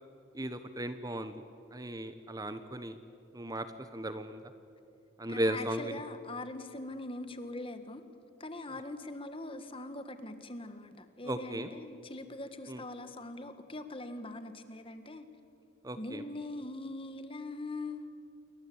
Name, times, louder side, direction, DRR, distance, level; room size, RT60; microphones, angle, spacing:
voice 1, 0.3-1.3 1.7-3.0 3.3-3.7 3.9-4.4 5.2-6.0 11.2-11.7 12.7-12.8 15.8-16.2, right 1 dB, 20° right, 10 dB, 1.0 m, -36 dB
voice 2, 5.3-8.0 8.4-15.3 16.0-18.2, left 2 dB, 25° left, 9 dB, 1.7 m, -42 dB
29.0 x 23.5 x 8.7 m, 2.6 s
head